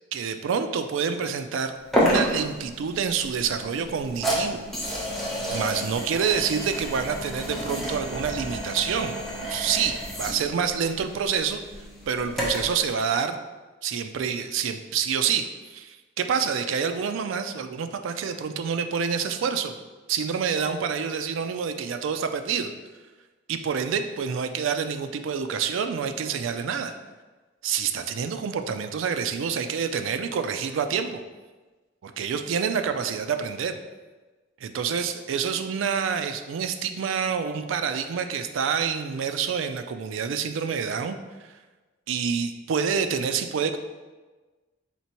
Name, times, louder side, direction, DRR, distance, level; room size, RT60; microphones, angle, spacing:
voice 1, 0.1-4.6 5.5-9.2 9.5-11.6 12.1-13.4 13.8-19.8 20.1-22.7 23.5-26.9 27.6-31.2 32.0-33.8 34.6-41.2 42.1-43.8, right 6 dB, 75° right, 8 dB, 0.3 m, -27 dB
sound 1, 1.9-12.8, equal, ahead, 0.8 m, -30 dB
4.3 x 3.4 x 2.9 m, 1.3 s
head